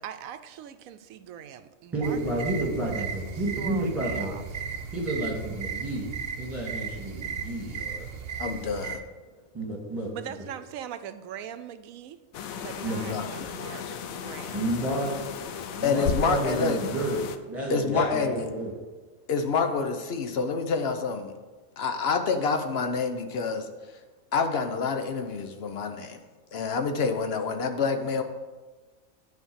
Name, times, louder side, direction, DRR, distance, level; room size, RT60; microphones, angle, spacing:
voice 1, 0.0-3.1 3.3-4.4 10.1-12.2 12.5-13.8 14.1-14.8, right 9 dB, 85° right, 11 dB, 1.0 m, -41 dB
voice 2, 1.9-4.4 4.9-6.1 6.4-8.1 9.5-10.1 12.8-13.1 14.5-15.1 15.7-17.2 17.5-18.7, right 1 dB, 10° right, -3 dB, 2.7 m, -30 dB
sound 1, 2.0-9.0, right 6 dB, 55° right, 0.9 m, -36 dB
voice 3, 8.4-9.0 13.1-13.3 15.8-16.8 17.7-18.4 19.3-21.3 21.8-23.7 24.3-26.2 26.5-28.2, left 5 dB, 55° left, 7 dB, 1.0 m, -27 dB
sound 2, 12.3-17.4, left 6 dB, 90° left, 1.1 m, -35 dB
9.5 x 4.3 x 7.2 m, 1.3 s
omnidirectional pair, 1.4 m